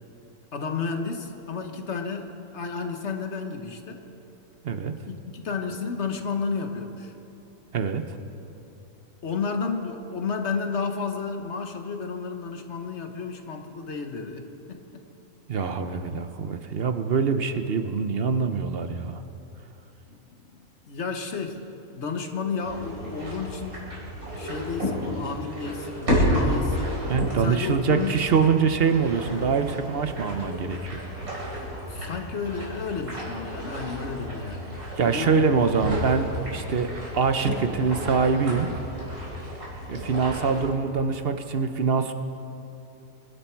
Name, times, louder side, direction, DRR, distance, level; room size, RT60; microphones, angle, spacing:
voice 1, 0.5-4.0 5.0-7.1 9.2-15.0 20.1-20.2 20.5-23.8 24.4-27.0 27.4-28.1 31.9-34.7 35.0-35.5, left 5 dB, 50° left, 5 dB, 1.4 m, -32 dB
voice 2, 15.5-19.2 27.1-31.0 35.0-38.7 39.9-42.1, right 5 dB, 50° right, 8 dB, 0.8 m, -24 dB
sound 1, 22.6-40.7, equal, 75° right, 4.6 m, -31 dB
25.5 x 11.5 x 4.6 m, 2.8 s
omnidirectional pair, 1.5 m